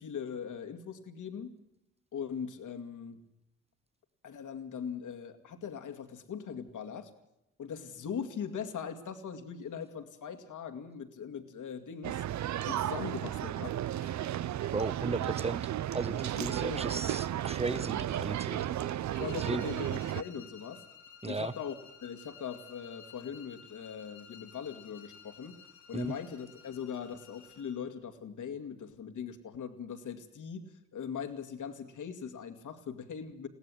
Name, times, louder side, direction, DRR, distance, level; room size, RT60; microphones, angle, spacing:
voice 1, 0.0-1.5 2.1-3.2 4.2-7.1 7.6-12.2 12.6-14.2 16.1-16.8 19.2-20.8 21.2-21.8 22.0-25.6 25.9-33.5, left 7 dB, 65° left, 8 dB, 2.4 m, -40 dB
sound 1, 12.0-20.2, right 12 dB, 55° right, 0.7 m, -34 dB
voice 2, 14.7-18.6 19.5-19.6 21.2-21.5 25.9-26.1, right 3 dB, 20° right, 15 dB, 1.3 m, -35 dB
sound 2, 19.1-27.8, left 7 dB, 90° left, 3.8 m, -54 dB
21.5 x 17.0 x 7.8 m, 0.84 s
hypercardioid pair, 40°, 33 cm